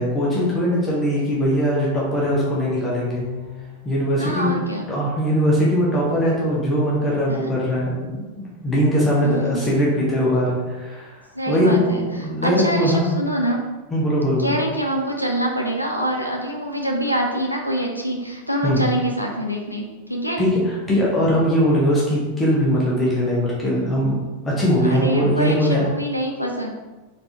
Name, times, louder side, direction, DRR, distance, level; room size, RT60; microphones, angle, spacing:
voice 1, 0.0-3.2 3.8-4.6 4.9-11.2 11.5-13.2 13.9-14.6 18.6-18.9 20.4-24.2 24.4-25.9, equal, 15° left, -6 dB, 1.2 m, -20 dB
Bowed string instrument, 3.1-4.0, left 7 dB, 5° right, 1.2 m, -38 dB
voice 2, 4.2-4.9 7.3-7.4 9.2-9.7 11.3-13.6 14.4-20.4 24.8-26.7, equal, 90° left, 1 dB, 0.6 m, -25 dB
3.9 x 3.6 x 3.0 m, 1.2 s
figure-of-eight pair, 90°, 0 cm